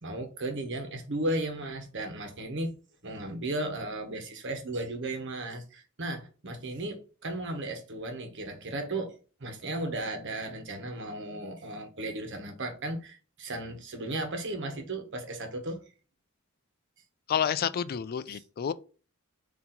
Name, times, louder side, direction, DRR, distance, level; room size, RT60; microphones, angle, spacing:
voice 1, 0.0-2.7 3.0-9.1 9.4-15.8 18.3-18.4, right 1 dB, 60° right, 1.2 m, -35 dB
voice 2, 17.3-18.7, left 8 dB, 45° left, 0.3 m, -29 dB
4.3 x 2.8 x 3.9 m
head